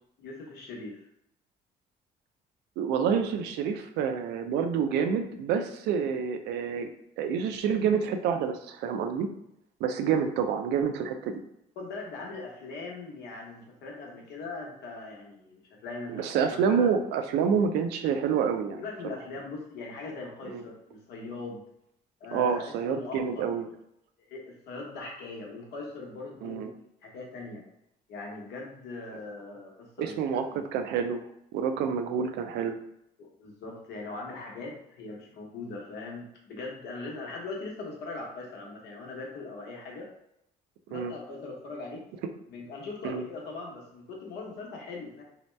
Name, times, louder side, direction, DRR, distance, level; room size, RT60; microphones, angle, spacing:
voice 1, 0.2-1.0 11.8-16.9 18.8-21.6 22.2-23.5 24.3-26.7 27.0-27.6 28.1-30.6 33.4-40.1 40.9-42.0 42.5-45.2, left 3 dB, 75° left, -1 dB, 0.9 m, -40 dB
voice 2, 2.8-6.9 7.2-9.3 9.8-11.4 16.1-18.8 20.5-20.6 22.3-23.7 26.4-26.7 30.0-31.2 31.5-32.8 40.9-41.1 43.0-43.2, right 7 dB, 80° right, 6 dB, 0.4 m, -28 dB
2.7 x 2.1 x 3.2 m, 0.79 s
cardioid pair, 110°, 17 cm